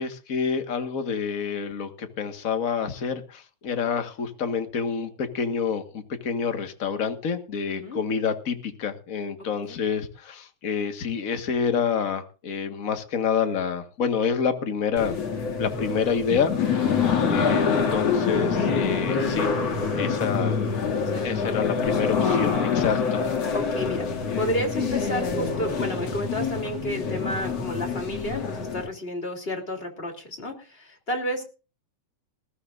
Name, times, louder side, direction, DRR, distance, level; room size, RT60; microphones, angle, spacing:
voice 1, 0.0-15.1 15.6-16.5 17.3-19.5 19.9-20.6 21.2-23.2, left 6 dB, 35° left, 7 dB, 1.4 m, -28 dB
sound 1, 15.0-28.9, left 5 dB, 55° left, 3.2 m, -26 dB
voice 2, 21.0-21.8 23.5-24.1 24.4-31.4, equal, 20° left, 4 dB, 3.0 m, -31 dB
20.5 x 14.5 x 2.6 m, 0.34 s
omnidirectional pair, 3.6 m